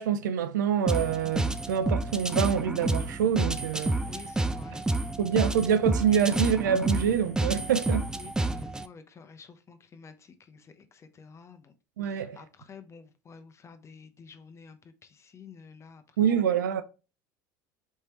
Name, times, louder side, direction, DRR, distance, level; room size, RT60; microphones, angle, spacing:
voice 1, 0.0-4.0 5.2-8.1 12.0-12.4 16.2-16.8, right 8 dB, 90° right, 0.5 m, -26 dB
sound 1, 0.9-8.9, right 2 dB, 5° right, 0.3 m, -29 dB
voice 2, 4.1-5.2 8.1-11.7 12.0-16.4, left 5 dB, 30° left, 0.7 m, -50 dB
4.4 x 3.3 x 2.9 m
hypercardioid pair, 90°, 10 cm